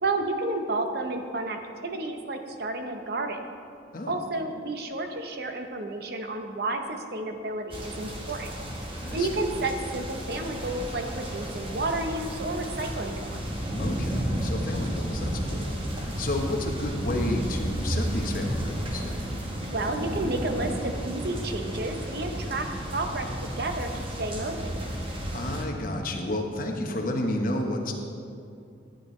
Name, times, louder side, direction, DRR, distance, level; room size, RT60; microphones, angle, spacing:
voice 1, 0.0-3.5 4.1-8.5 9.1-13.4 19.7-22.7 22.9-24.9, right 2 dB, 55° right, 5 dB, 0.7 m, -31 dB
sound 1, 7.7-25.6, equal, 30° right, 1.0 m, -32 dB
voice 2, 13.7-19.1 25.3-27.9, left 1 dB, 45° left, 2 dB, 0.9 m, -31 dB
11.5 x 8.7 x 3.2 m, 2.4 s
head